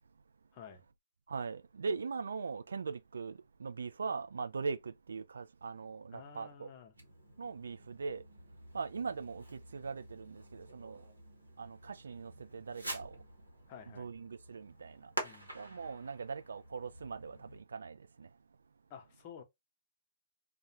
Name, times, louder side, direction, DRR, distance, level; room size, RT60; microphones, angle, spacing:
voice 1, 0.5-0.8 6.1-6.9 13.7-14.1 15.2-15.5 18.9-19.4, left 7 dB, 40° left, 0.7 m, -51 dB
voice 2, 1.3-6.7 7.4-8.2 8.7-11.0 11.6-13.2 13.9-15.1 15.5-18.3, right 5 dB, 70° right, 0.3 m, -41 dB
Fireworks, 6.9-17.6, right 1 dB, 90° right, 0.9 m, -48 dB
2.3 x 2.1 x 2.9 m
figure-of-eight pair, 120°, 0 cm